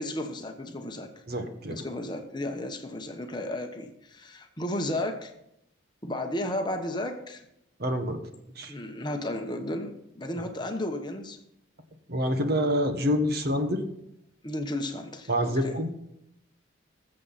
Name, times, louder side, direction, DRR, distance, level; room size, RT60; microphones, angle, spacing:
voice 1, 0.0-1.1 1.7-5.3 6.0-7.4 8.7-11.4 14.4-15.7, left 1 dB, 20° left, 5 dB, 1.0 m, -33 dB
voice 2, 1.3-1.8 7.8-8.2 8.6-8.7 12.1-13.8 15.3-15.9, equal, 50° right, 6 dB, 1.3 m, -27 dB
20.5 x 7.7 x 4.1 m, 0.81 s
head